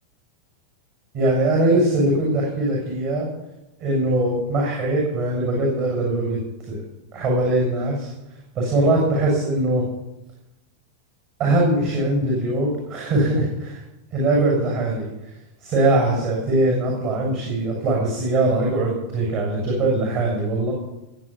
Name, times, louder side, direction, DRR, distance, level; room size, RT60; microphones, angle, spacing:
voice 1, 1.1-3.3 3.8-6.4 6.7-6.8 7.1-8.1 8.5-9.8 11.4-13.8 14.1-15.1 15.6-20.7, right 2 dB, 45° right, -2 dB, 7.4 m, -21 dB
20.0 x 9.3 x 7.5 m, 0.96 s
figure-of-eight pair, 90°, 0 cm